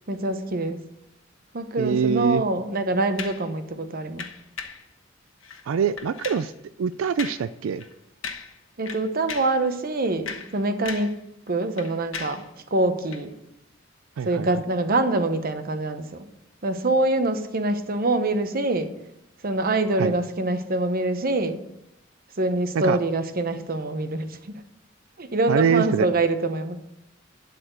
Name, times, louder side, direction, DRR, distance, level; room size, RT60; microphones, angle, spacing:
voice 1, 0.1-0.8 1.5-4.3 8.8-11.2 11.5-12.4 12.7-13.3 14.2-16.1 16.6-18.9 19.4-21.6 22.4-24.3 25.2-26.7, right 2 dB, 50° right, 9 dB, 0.9 m, -25 dB
voice 2, 1.8-2.4 5.7-6.5 6.8-7.8 14.2-14.5 20.0-20.1 22.7-23.0 25.5-26.1, right 7 dB, 85° right, 12 dB, 0.4 m, -23 dB
sound 1, 3.2-3.5 4.2-4.9 5.4-5.6 6.0-6.5 7.2-7.5 7.8-7.9 8.2-8.6 8.9-9.6 10.1-11.2 11.5-12.5 13.1-13.2, left 6 dB, 80° left, 1.1 m, -37 dB
11.5 x 4.2 x 8.0 m, 0.83 s
head